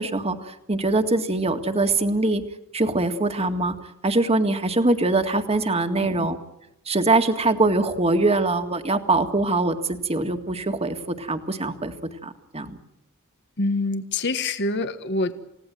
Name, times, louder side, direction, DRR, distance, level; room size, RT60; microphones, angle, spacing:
voice 1, 0.0-2.4 2.7-3.7 4.0-6.4 6.9-11.9 12.2-12.8, right 2 dB, 30° right, 6 dB, 1.9 m, -23 dB
voice 2, 13.6-15.3, left 2 dB, 50° left, 9 dB, 1.6 m, -26 dB
29.0 x 17.5 x 9.2 m, 0.86 s
head